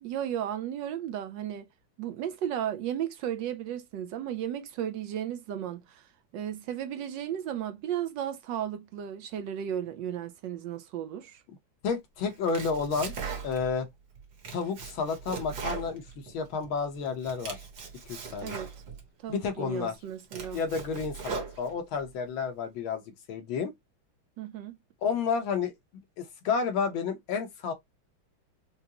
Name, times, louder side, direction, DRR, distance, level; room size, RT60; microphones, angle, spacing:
voice 1, 0.0-1.7 2.0-11.4 18.4-18.7 19.2-20.6 24.4-24.8, right 10 dB, 75° right, 1.1 m, -34 dB
voice 2, 11.8-13.1 13.4-13.9 14.5-17.6 18.1-18.6 19.3-20.0 20.5-23.0 23.3-23.7 25.0-25.7 26.2-27.7, left 5 dB, 70° left, 1.8 m, -31 dB
Domestic sounds home sounds, 12.3-13.8 14.2-16.7 17.1-19.0 19.6-19.7 20.1-22.0, right 6 dB, 55° right, 1.7 m, -39 dB
5.1 x 2.1 x 2.8 m
omnidirectional pair, 2.3 m